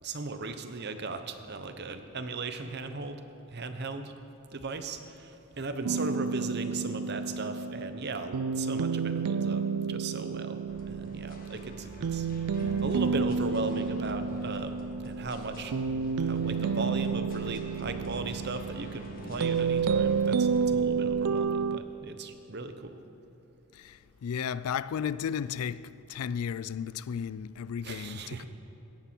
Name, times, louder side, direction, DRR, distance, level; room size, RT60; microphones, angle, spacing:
voice 1, 0.0-3.2 3.5-4.1 4.5-9.6 9.9-10.6 10.9-12.3 12.6-14.7 15.0-15.7 16.2-23.0 27.8-28.5, right 3 dB, 50° right, 0.9 m, -37 dB
sound 1, 5.8-21.8, right 5 dB, 85° right, 0.4 m, -30 dB
sound 2, 10.7-21.3, equal, 40° left, 1.7 m, -44 dB
voice 2, 24.2-25.8 26.1-28.4, left 7 dB, 80° left, 0.4 m, -33 dB
17.0 x 13.5 x 4.5 m
head